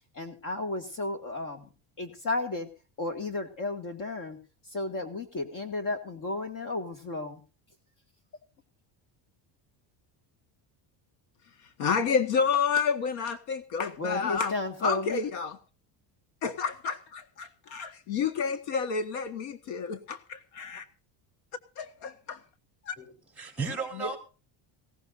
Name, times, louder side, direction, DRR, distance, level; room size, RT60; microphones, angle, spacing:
voice 1, 0.1-1.7 2.0-2.7 3.0-4.4 4.7-7.4 14.0-15.2, left 2 dB, 40° left, 2.4 m, -33 dB
voice 2, 11.8-14.6 14.8-15.6 16.4-20.8 21.8-22.4 22.9-23.0 23.9-24.1, left 6 dB, 70° left, 1.8 m, -30 dB
voice 3, 23.0-24.2, right 4 dB, 5° right, 4.5 m, -35 dB
19.0 x 17.5 x 2.7 m
cardioid pair, 155°, 49 cm